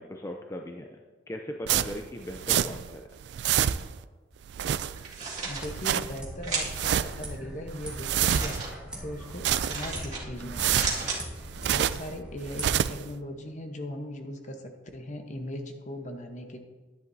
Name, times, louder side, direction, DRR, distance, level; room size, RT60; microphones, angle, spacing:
voice 1, 0.0-3.1, left 1 dB, 15° left, 3 dB, 0.5 m, -39 dB
sound 1, 1.7-3.0 3.2-4.0 4.4-5.2 5.6-6.2 6.6-7.3 7.7-8.7 9.2-10.0 10.4-12.1 12.4-13.1, right 10 dB, 65° right, 0.3 m, -28 dB
sound 2, 5.0-5.6 6.4-6.9 8.1-8.7 9.7-10.2 10.6-11.2, right 4 dB, 40° right, 2.1 m, -33 dB
sound 3, 5.2-12.7, right 1 dB, 5° right, 1.8 m, -41 dB
voice 2, 5.4-11.1 11.6-16.6, left 1 dB, 40° left, 5 dB, 1.0 m, -39 dB
10.5 x 10.5 x 2.7 m, 1.3 s
head